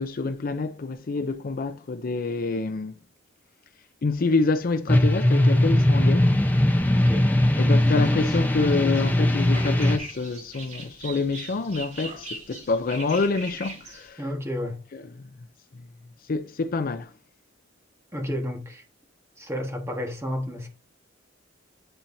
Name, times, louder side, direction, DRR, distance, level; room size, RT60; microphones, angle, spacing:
voice 1, 0.0-3.0 4.0-6.3 7.6-14.2 14.9-15.3 15.7-15.9 16.2-17.1, left 3 dB, 50° left, 0.5 m, -27 dB
sound 1, 4.9-10.0, left 1 dB, 10° left, 0.7 m, -20 dB
voice 2, 6.9-7.4 14.2-14.8 18.1-18.8 19.4-20.7, left 1 dB, 15° right, 1.4 m, -31 dB
sound 2, 7.7-14.1, right 2 dB, 40° right, 2.6 m, -41 dB
8.9 x 4.4 x 2.7 m
head